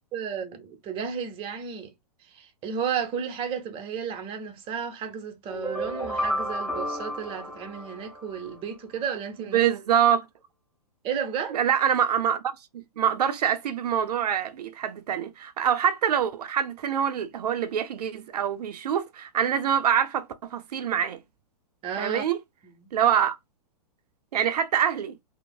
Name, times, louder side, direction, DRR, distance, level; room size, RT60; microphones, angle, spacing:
voice 1, 0.1-1.9 2.2-9.6 11.0-11.6 21.8-22.2 22.6-22.9, right 7 dB, 25° right, 0.7 m, -33 dB
sound 1, 5.5-8.6, equal, 5° left, 0.9 m, -32 dB
voice 2, 9.5-10.3 11.5-12.4 12.7-21.2 22.0-22.4 22.9-23.4 24.3-25.1, right 9 dB, 80° right, 0.4 m, -25 dB
3.1 x 2.0 x 2.2 m
hypercardioid pair, 120°, 20 cm